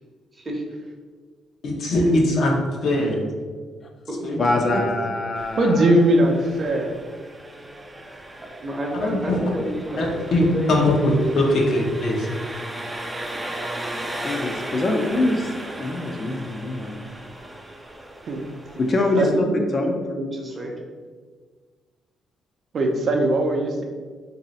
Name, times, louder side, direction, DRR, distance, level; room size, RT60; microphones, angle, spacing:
voice 1, 0.3-0.6 4.1-4.2 4.6-4.8 8.6-10.8 19.2-20.7, right 1 dB, 30° right, 0 dB, 0.8 m, -30 dB
voice 2, 1.6-3.3 4.2-4.8 9.0-9.4 10.0-12.3, left 1 dB, 70° left, -1 dB, 0.8 m, -21 dB
voice 3, 4.4-5.9 14.2-17.1 18.8-19.5 19.7-19.9, left 2 dB, 40° left, 3 dB, 0.5 m, -24 dB
Engine, 5.3-19.4, right 1 dB, 10° right, 0.4 m, -36 dB
voice 4, 5.5-6.9 18.3-18.4 19.2-19.3 22.7-23.8, right 1 dB, 55° right, 2 dB, 0.6 m, -19 dB
3.1 x 2.7 x 4.0 m, 1.5 s
cardioid pair, 90°, 0 cm